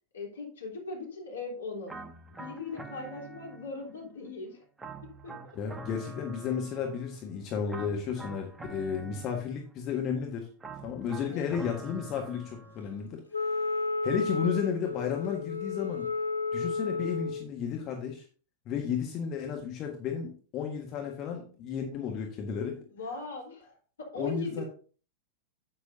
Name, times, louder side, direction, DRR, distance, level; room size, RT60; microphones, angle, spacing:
voice 1, 0.1-2.0 2.2-4.6 5.2-5.3 11.3-11.7 22.9-24.7, left 3 dB, 70° left, 0 dB, 3.3 m, -39 dB
sound 1, 1.9-4.0 4.8-7.2 7.7-9.8 10.6-13.0, right 2 dB, 10° right, 1.0 m, -45 dB
voice 2, 5.5-10.5 10.8-16.1 16.5-18.2 18.6-22.8 24.2-24.6, left 7 dB, 35° left, 2 dB, 1.5 m, -33 dB
Wind instrument woodwind instrument, 13.3-17.5, left 4 dB, 85° left, 0.7 m, -32 dB
10.0 x 8.6 x 2.7 m, 0.39 s
figure-of-eight pair, 90°, 0 cm